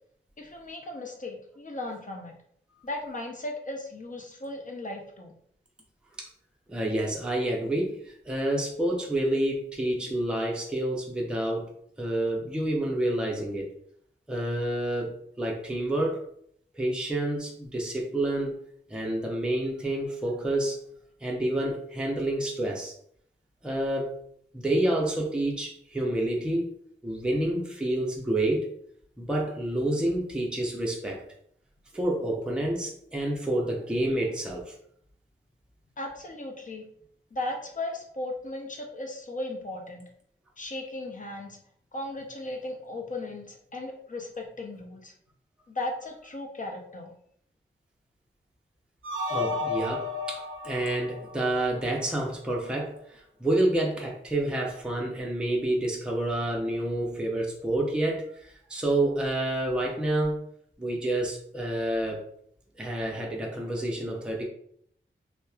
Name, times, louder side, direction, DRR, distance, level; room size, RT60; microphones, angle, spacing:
voice 1, 0.4-2.3 2.8-5.4 36.0-36.9 37.3-40.0 40.6-41.6 41.9-45.1 45.7-47.1, left 2 dB, 40° left, 2 dB, 0.6 m, -36 dB
voice 2, 6.7-11.7 12.0-13.7 14.3-16.3 16.7-18.6 18.9-20.8 21.2-22.9 23.6-24.1 24.5-26.7 27.0-28.7 29.2-31.2 31.9-34.7 49.3-60.4 60.8-62.2 62.8-64.4, right 1 dB, 5° right, -2 dB, 0.6 m, -28 dB
sound 1, 49.0-52.2, left 3 dB, 90° right, 0.4 m, -33 dB
2.8 x 2.1 x 2.3 m, 0.65 s
cardioid pair, 60°, 20 cm